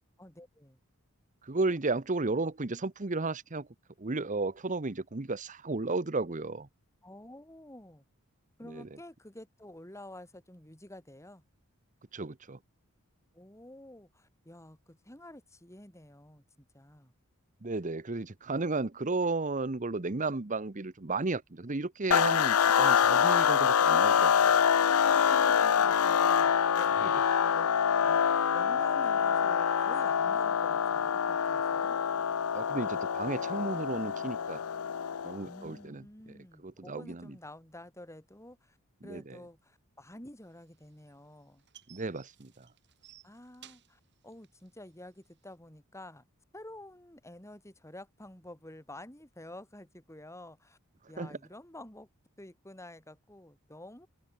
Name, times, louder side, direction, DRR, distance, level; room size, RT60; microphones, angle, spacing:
voice 1, 0.2-0.8 7.0-8.0 8.6-11.4 13.3-17.1 25.0-27.2 27.4-27.7 28.0-28.3 28.5-32.0 35.4-38.8 39.0-41.6 43.2-46.2 46.5-50.8 51.1-52.1 52.4-54.1, left 1 dB, 15° left, 4.1 m, -49 dB
voice 2, 1.4-3.7 4.0-6.7 8.6-8.9 12.1-12.6 17.6-24.6 27.1-27.2 32.5-34.6 35.2-36.0 36.6-37.3 39.0-39.4 41.9-42.7 51.2-51.4, right 3 dB, 35° right, 1.0 m, -33 dB
sound 1, 22.1-35.5, left 7 dB, 90° left, 0.6 m, -26 dB
sound 2, 40.5-45.5, right 11 dB, 55° right, 4.9 m, -58 dB
head